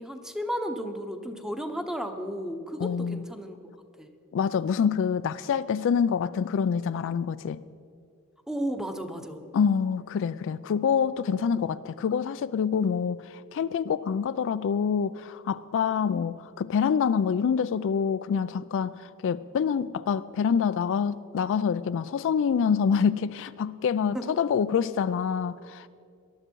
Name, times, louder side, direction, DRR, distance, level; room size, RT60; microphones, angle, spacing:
voice 1, 0.0-3.6 4.0-4.1 8.5-9.4 24.1-24.4, equal, ahead, 6 dB, 0.9 m, -33 dB
voice 2, 2.8-3.2 4.3-7.6 9.5-25.9, left 6 dB, 60° left, 14 dB, 0.3 m, -26 dB
19.0 x 12.0 x 4.6 m, 2.3 s
head